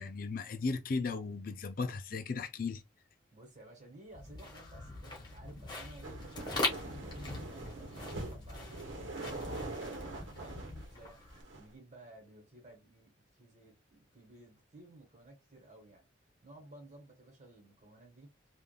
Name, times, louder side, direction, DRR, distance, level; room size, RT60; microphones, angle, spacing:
voice 1, 0.0-2.8, left 4 dB, 50° left, 0.4 m, -36 dB
voice 2, 3.3-6.2 6.5-9.0 9.3-16.1 16.4-18.3, right 2 dB, 40° right, 1.4 m, -56 dB
sound 1, 4.1-11.4, left 2 dB, 25° left, 1.3 m, -41 dB
sound 2, 6.0-11.7, right 3 dB, 85° right, 1.0 m, -44 dB
3.5 x 2.4 x 2.3 m
head